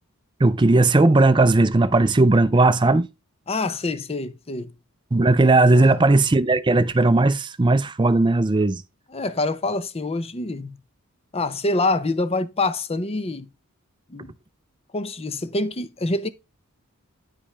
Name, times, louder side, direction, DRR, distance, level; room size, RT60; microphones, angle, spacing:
voice 1, 0.4-3.1 5.1-8.8, right 2 dB, 20° right, 0.4 m, -17 dB
voice 2, 3.5-4.7 5.7-6.0 9.1-10.8 11.3-13.5 14.1-14.3 14.9-16.3, left 2 dB, 25° left, 0.6 m, -26 dB
9.8 x 5.2 x 3.3 m
head